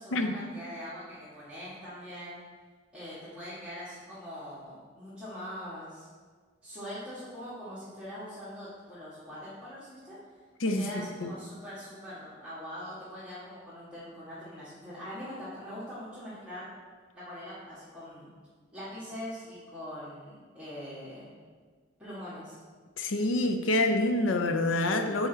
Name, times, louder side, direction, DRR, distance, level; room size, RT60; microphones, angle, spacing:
voice 1, 0.0-2.4 2.9-6.1 6.6-10.2 10.8-16.7 17.1-18.3 18.7-21.4 22.0-22.6, equal, 5° right, -13 dB, 1.4 m, -42 dB
voice 2, 10.6-10.9 11.2-11.3 23.0-25.3, left 2 dB, 75° left, 6 dB, 0.5 m, -27 dB
6.5 x 4.3 x 3.9 m, 1.5 s
head